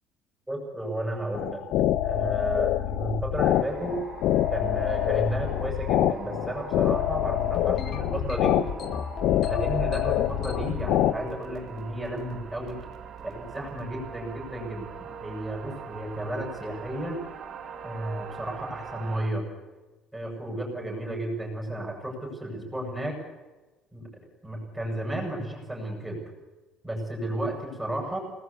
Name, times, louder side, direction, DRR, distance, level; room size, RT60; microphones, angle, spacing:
voice 1, 0.5-1.6 2.0-4.0 4.5-8.6 9.4-12.8 13.2-17.2 17.8-19.5 20.1-23.2 23.9-24.1 24.4-26.2 26.8-28.2, right 1 dB, 5° right, 0 dB, 7.3 m, -33 dB
sound 1, 1.3-11.1, left 13 dB, 65° left, 1.1 m, -26 dB
sound 2, 3.4-19.3, right 6 dB, 45° right, 2.9 m, -43 dB
sound 3, 7.5-10.8 11.3-11.8 12.0-12.3 12.7-12.9 13.5-13.8, left 6 dB, 50° left, 2.3 m, -36 dB
26.5 x 20.0 x 8.5 m, 1.2 s
cardioid pair, 145°, 0 cm